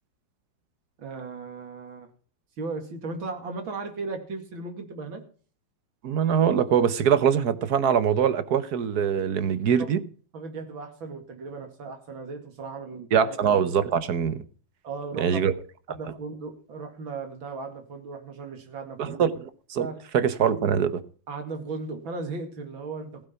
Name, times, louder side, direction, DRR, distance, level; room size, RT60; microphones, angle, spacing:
voice 1, 1.0-2.1 2.6-5.2 9.8-9.9 10.3-13.4 14.8-15.4 15.9-19.2 19.8-20.0 21.3-23.3, right 3 dB, 85° right, 3.0 m, -36 dB
voice 2, 6.0-10.0 13.1-14.4 15.2-15.5 19.0-19.9 20.1-21.0, right 8 dB, 60° right, 1.4 m, -23 dB
16.0 x 8.8 x 5.7 m
omnidirectional pair, 2.1 m